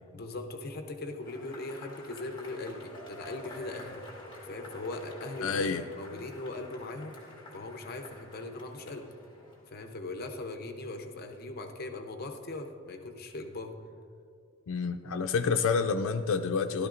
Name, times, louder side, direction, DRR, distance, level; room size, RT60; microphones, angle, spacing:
voice 1, 0.1-4.0 4.4-7.2 7.5-9.1 9.7-13.7, left 2 dB, 45° left, 4 dB, 0.7 m, -40 dB
Cheering / Applause / Crowd, 1.2-9.9, left 1 dB, 20° left, 1.6 m, -48 dB
voice 2, 5.4-5.8 14.7-16.9, left 5 dB, 85° left, 5 dB, 0.4 m, -28 dB
13.5 x 12.0 x 2.5 m, 2.3 s
head